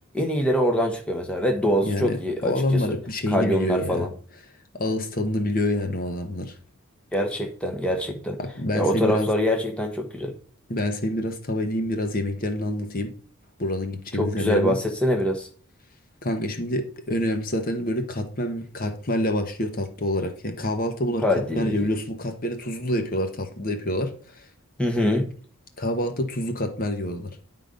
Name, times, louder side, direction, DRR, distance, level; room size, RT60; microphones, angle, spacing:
voice 1, 0.1-2.8 3.3-4.1 7.1-8.4 8.7-10.3 14.2-15.5 21.2-21.8 24.8-25.3, equal, 5° left, 1.0 m, -24 dB
voice 2, 1.8-4.1 4.7-6.6 8.4-9.3 10.7-13.1 13.6-14.8 16.2-21.2 21.5-24.5 25.8-27.5, left 1 dB, 40° left, 1.0 m, -27 dB
10.0 x 3.8 x 5.2 m
head